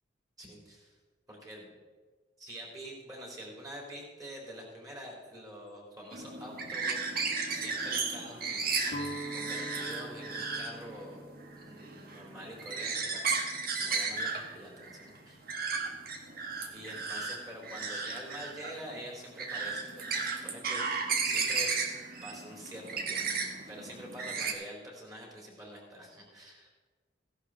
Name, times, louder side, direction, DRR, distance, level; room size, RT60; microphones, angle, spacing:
voice 1, 0.4-1.0 1.3-1.8 2.4-7.0 7.2-8.7 9.3-11.2 11.5-13.4 13.8-15.4 16.7-20.8 21.2-21.8 22.2-23.2 23.7-26.7, equal, 20° right, -2 dB, 3.9 m, -46 dB
sound 1, 6.1-24.5, right 4 dB, 55° right, 1.4 m, -34 dB
Guitar, 8.9-14.9, right 1 dB, 55° left, 1.2 m, -45 dB
15.5 x 11.5 x 3.9 m, 1.4 s
head